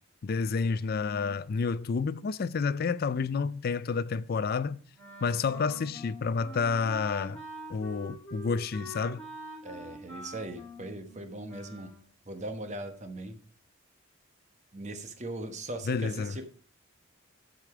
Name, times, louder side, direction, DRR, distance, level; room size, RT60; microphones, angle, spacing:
voice 1, 0.2-4.8 5.2-7.4 7.7-9.2 15.9-16.3, left 5 dB, 50° left, 0.4 m, -29 dB
Wind instrument woodwind instrument, 5.0-12.0, right 1 dB, 5° left, 2.6 m, -45 dB
voice 2, 9.6-11.9 12.2-13.4 14.7-16.5, right 1 dB, 35° right, 1.1 m, -39 dB
11.0 x 5.1 x 4.8 m
head